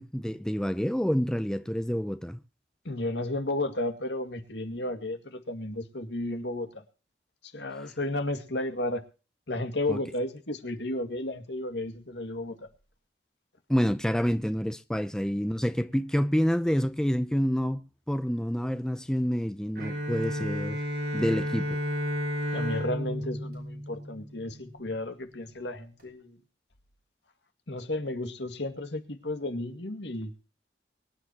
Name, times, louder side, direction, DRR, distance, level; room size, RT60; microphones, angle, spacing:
voice 1, 0.0-2.4 9.9-10.0 13.7-20.8 21.1-21.8, equal, 5° left, 0.5 m, -28 dB
voice 2, 2.8-6.8 7.4-9.0 9.5-12.7 22.5-26.4 27.7-30.3, left 1 dB, 75° left, 2.1 m, -33 dB
Bowed string instrument, 19.8-24.6, equal, 60° right, 5.9 m, -32 dB
23.5 x 10.5 x 2.9 m
head